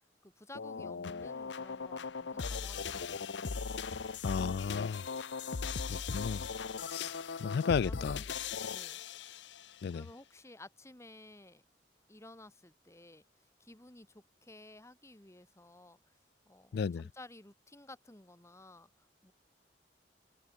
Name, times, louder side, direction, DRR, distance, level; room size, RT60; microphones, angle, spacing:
voice 1, 0.2-3.3 7.8-8.3 8.7-9.0 9.9-11.6 12.1-13.2 13.6-16.0 16.5-19.3, left 2 dB, 15° left, 2.0 m, -54 dB
sound 1, 0.5-9.8, left 5 dB, 80° left, 0.7 m, -39 dB
voice 2, 4.2-5.0 6.1-6.4 6.9-7.1 7.4-8.2 9.8-10.0 16.7-17.0, left 6 dB, 65° left, 0.3 m, -33 dB
head